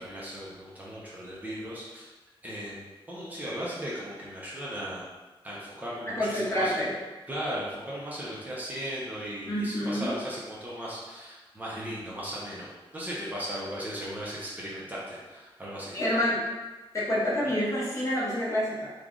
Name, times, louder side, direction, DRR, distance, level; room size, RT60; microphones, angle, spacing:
voice 1, 0.0-2.1 2.4-5.0 5.4-6.7 7.3-12.7 12.9-16.0, equal, 15° right, -7 dB, 0.6 m, -37 dB
voice 2, 6.1-6.9 9.5-10.2 15.9-16.4 16.9-18.9, equal, 35° left, -7 dB, 0.9 m, -28 dB
3.1 x 2.4 x 3.6 m, 1.2 s
wide cardioid pair, 175°, 9 cm